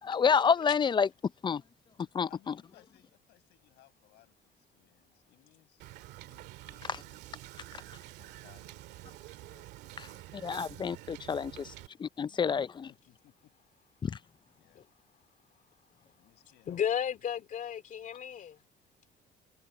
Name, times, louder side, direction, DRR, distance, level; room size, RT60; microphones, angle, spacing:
voice 1, 0.1-1.1 1.4-1.6 2.1-2.3 10.4-11.7 12.0-12.7 14.0-14.2, left 6 dB, 25° left, 0.5 m, -28 dB
voice 2, 2.3-5.9 6.2-7.4 7.8-10.8 11.7-11.9 12.2-13.5 14.6-14.8 16.2-17.0, left 16 dB, 80° left, 7.4 m, -64 dB
Wind / Boat Water vehicle, 5.8-11.9, right 16 dB, 90° right, 1.9 m, -48 dB
voice 3, 16.7-18.6, left 9 dB, 50° left, 3.3 m, -33 dB
cardioid pair, 110°, 17 cm